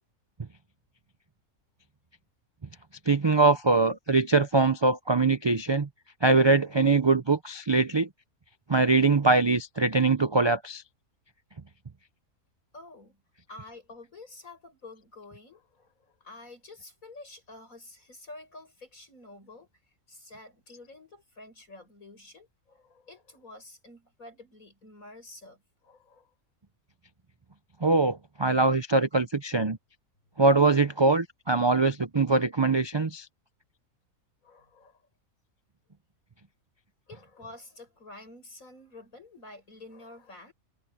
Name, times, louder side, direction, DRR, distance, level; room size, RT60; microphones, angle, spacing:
voice 1, 3.1-5.9 6.2-8.1 8.7-10.8 27.8-29.8 30.4-33.3, right 3 dB, 40° right, 0.3 m, -23 dB
voice 2, 12.7-13.2 13.5-19.7 20.1-26.3 34.4-35.1 37.1-40.5, left 2 dB, 65° left, 7.0 m, -49 dB
omnidirectional pair, 1.5 m